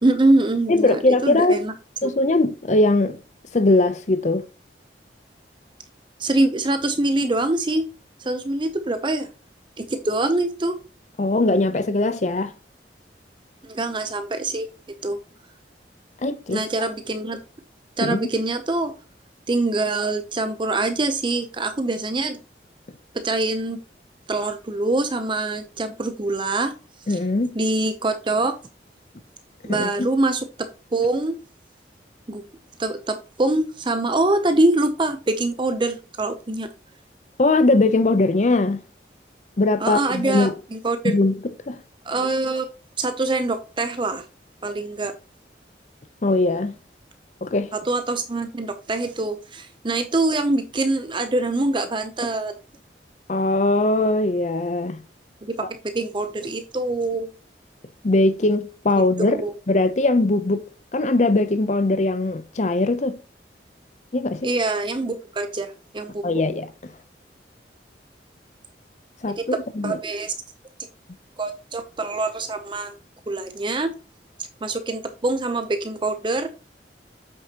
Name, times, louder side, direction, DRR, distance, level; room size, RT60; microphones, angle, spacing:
voice 1, 0.0-1.7 2.0-2.1 6.2-7.8 8.2-9.3 9.8-10.8 13.6-14.7 15.0-15.2 16.5-17.4 18.0-18.9 19.5-22.4 23.2-23.8 24.3-26.7 27.1-27.2 27.5-28.5 29.6-30.5 30.9-31.4 32.3-32.4 32.8-36.7 39.8-41.2 42.0-42.7 43.0-44.3 44.6-45.1 47.7-52.5 55.4-55.7 55.9-57.3 59.2-59.5 64.4-66.4 69.4-70.3 71.4-73.0 73.3-73.9 74.6-76.5, right 2 dB, 30° right, 0.7 m, -24 dB
voice 2, 0.7-1.6 2.0-3.2 3.5-4.4 11.2-12.5 16.2-16.6 18.0-18.2 27.1-27.6 29.7-30.1 37.4-38.8 39.6-40.5 41.0-41.3 41.7-41.8 46.2-46.8 47.4-47.7 53.3-55.0 58.0-59.4 59.7-60.7 60.9-63.2 64.1-64.5 66.2-66.7 69.2-70.0, left 2 dB, 40° left, 0.6 m, -20 dB
8.2 x 6.3 x 2.9 m
head